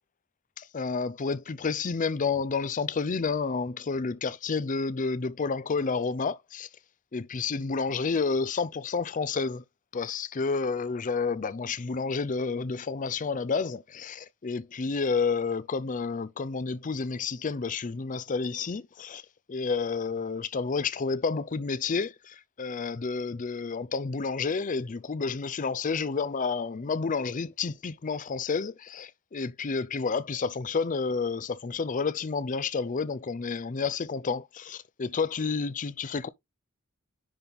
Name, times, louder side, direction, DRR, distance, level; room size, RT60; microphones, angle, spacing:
voice 1, 0.6-6.7 7.1-9.6 9.9-19.2 19.5-36.3, left 4 dB, 35° left, 0.5 m, -30 dB
10.0 x 4.0 x 3.4 m
head